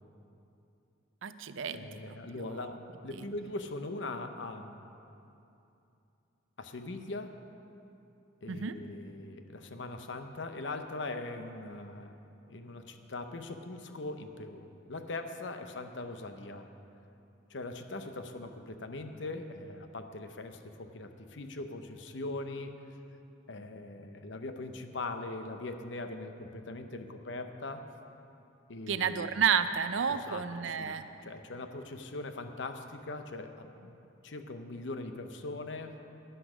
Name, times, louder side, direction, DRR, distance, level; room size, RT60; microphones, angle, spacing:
voice 1, 1.2-2.7 3.1-3.3 8.5-8.7 28.9-31.0, right 7 dB, 80° right, 11 dB, 0.5 m, -31 dB
voice 2, 1.7-2.8 3.0-4.8 6.6-7.4 8.4-12.2 12.5-16.7 17.5-22.8 23.5-27.8 28.7-29.3 30.1-34.0 34.2-35.9, left 2 dB, 70° left, 7 dB, 0.8 m, -41 dB
12.5 x 10.5 x 5.0 m, 2.8 s
head